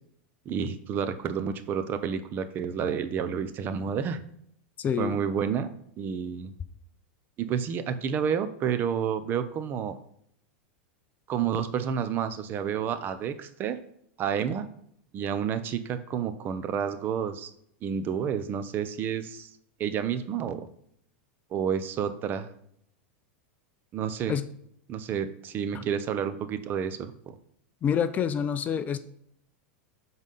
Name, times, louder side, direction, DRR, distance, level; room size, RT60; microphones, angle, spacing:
voice 1, 0.5-4.2 5.0-5.7 6.0-6.5 7.4-10.0 11.3-13.8 14.2-14.7 15.1-17.5 17.8-19.5 19.8-20.7 21.5-22.5 23.9-24.3 24.9-27.3, right 7 dB, 35° right, 11 dB, 0.7 m, -30 dB
voice 2, 4.8-5.2 24.3-24.5 25.7-25.8 27.8-29.0, left 8 dB, 25° left, 12 dB, 0.5 m, -27 dB
7.2 x 4.0 x 5.5 m, 0.68 s
supercardioid pair, 125°, 6 cm